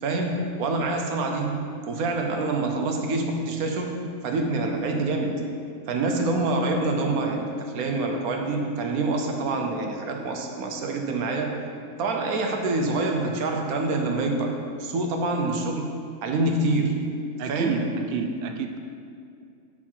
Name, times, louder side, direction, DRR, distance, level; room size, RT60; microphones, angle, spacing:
voice 1, 0.0-5.4 5.9-11.6 12.0-15.9 16.2-17.1 17.5-17.8, right 2 dB, 85° right, 3 dB, 1.2 m, -26 dB
voice 2, 17.4-18.8, right 4 dB, 60° right, 5 dB, 0.6 m, -29 dB
6.2 x 5.9 x 4.4 m, 2.4 s
omnidirectional pair, 1.5 m